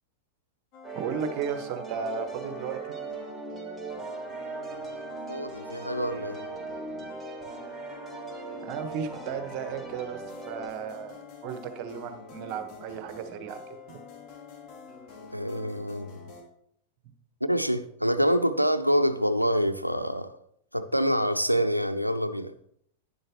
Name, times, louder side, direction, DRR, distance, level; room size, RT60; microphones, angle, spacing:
sound 1, 0.7-16.4, left 4 dB, 40° left, 3.3 m, -47 dB
sound 2, 0.8-10.7, right 4 dB, ahead, 3.2 m, -39 dB
voice 1, 0.9-2.9 8.6-11.2 11.4-14.0, right 6 dB, 40° right, 1.3 m, -35 dB
voice 2, 4.4-4.9 5.3-6.4 15.3-16.1 17.4-20.3 20.7-22.5, equal, 90° right, 0.6 m, -26 dB
11.0 x 10.5 x 3.0 m
figure-of-eight pair, 90°, 0 cm